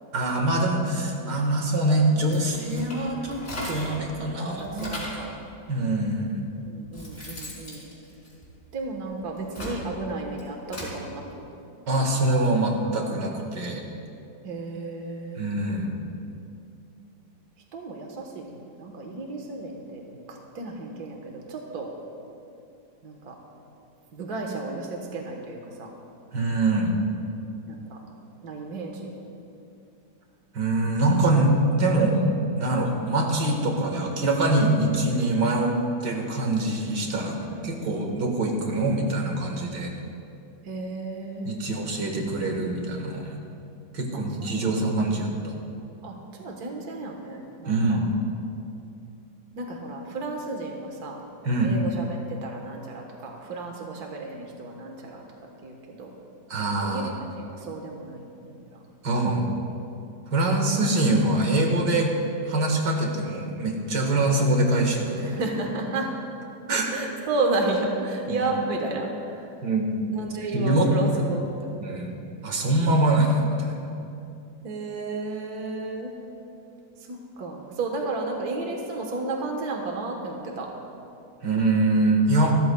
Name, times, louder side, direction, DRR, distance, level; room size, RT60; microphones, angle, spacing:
voice 1, 0.1-3.4 3.7-4.9 5.7-6.5 11.9-13.8 15.4-15.9 26.3-27.0 30.5-32.2 32.6-35.7 36.0-37.4 37.6-39.9 41.5-43.4 43.9-45.5 47.7-48.1 51.4-51.7 56.5-57.1 59.0-59.4 60.3-62.1 62.5-65.4 66.7-66.9 68.3-68.4 69.6-69.9 70.5-71.2 71.8-73.9 81.4-82.5, right 2 dB, 85° right, 1 dB, 2.2 m, -24 dB
sound 1, 2.2-4.0 4.4-5.3 6.1-6.2 6.7-8.8 9.3-11.0, left 1 dB, 40° left, 4.1 m, -38 dB
voice 2, 4.4-5.4 6.6-7.8 8.7-11.4 14.4-15.5 17.7-21.9 23.0-23.4 24.1-25.9 27.7-28.0 28.4-29.1 37.4-38.1 40.6-41.7 44.1-45.0 46.0-48.0 49.6-51.2 51.6-55.2 55.6-56.1 56.8-58.3 58.7-58.8 65.2-66.1 66.9-69.4 70.1-71.8 74.6-76.1 77.0-80.7, right 3 dB, 65° right, 1 dB, 1.8 m, -33 dB
27.0 x 13.5 x 2.3 m, 2.7 s
omnidirectional pair, 1.8 m